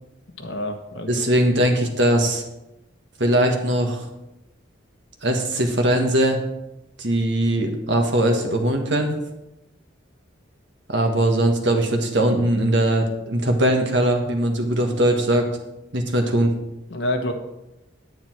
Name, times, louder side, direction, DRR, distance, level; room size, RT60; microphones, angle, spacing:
voice 1, 0.4-1.2 16.9-17.3, left 1 dB, 65° left, 4 dB, 1.4 m, -27 dB
voice 2, 1.1-2.4 3.2-4.0 5.2-6.4 7.0-9.1 10.9-15.5 15.9-16.5, right 1 dB, 65° right, 3 dB, 1.6 m, -20 dB
9.5 x 8.6 x 4.6 m, 0.91 s
head